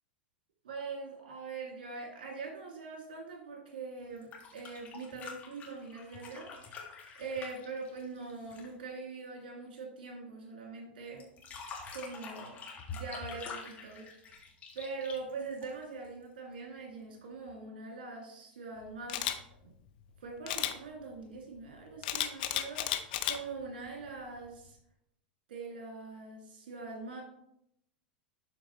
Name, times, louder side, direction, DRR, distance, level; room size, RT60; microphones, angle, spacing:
voice 1, 0.6-11.3 11.9-12.6 12.9-14.1 14.7-19.4 19.6-19.7 20.2-24.8 25.5-27.2, right 4 dB, 60° right, -1 dB, 2.4 m, -43 dB
sound 1, 4.1-8.8 11.2-16.1 17.5-17.6, left 4 dB, 25° left, 1.8 m, -46 dB
Camera, 19.1-19.4 20.5-20.7 22.0-23.4 23.9-24.1, left 12 dB, 55° left, 0.7 m, -32 dB
11.5 x 4.2 x 3.2 m, 0.75 s
figure-of-eight pair, 90°, 6 cm